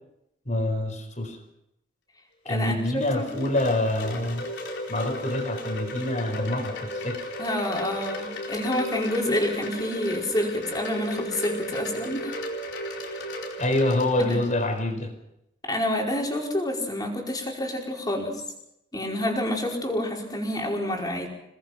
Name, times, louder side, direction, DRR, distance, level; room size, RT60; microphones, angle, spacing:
voice 1, 0.5-1.4 2.5-4.4 4.9-7.2 13.6-15.1, left 1 dB, 40° left, 6 dB, 4.6 m, -26 dB
voice 2, 2.5-3.3 7.4-12.3 14.2-14.4 15.7-18.4 18.9-21.3, left 1 dB, 20° left, 0 dB, 5.1 m, -28 dB
Wind chime, 2.6-14.8, left 1 dB, 70° left, 4.6 m, -35 dB
28.0 x 20.0 x 6.0 m, 0.82 s
head